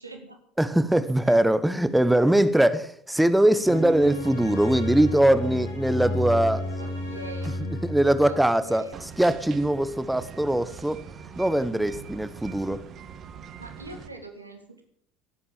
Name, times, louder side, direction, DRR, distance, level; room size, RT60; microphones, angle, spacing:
voice 1, 0.0-0.4 1.2-1.4 6.8-7.7 8.2-8.9 13.6-14.8, right 2 dB, 90° right, 1.8 m, -43 dB
voice 2, 0.6-6.7 7.8-8.9 9.2-11.0 11.4-12.8, right 1 dB, 5° right, 1.1 m, -22 dB
sound 1, 3.6-8.8, left 1 dB, 80° left, 7.8 m, -32 dB
sound 2, 8.9-14.1, right 7 dB, 40° right, 1.6 m, -42 dB
18.0 x 8.4 x 7.4 m
figure-of-eight pair, 70°, 0 cm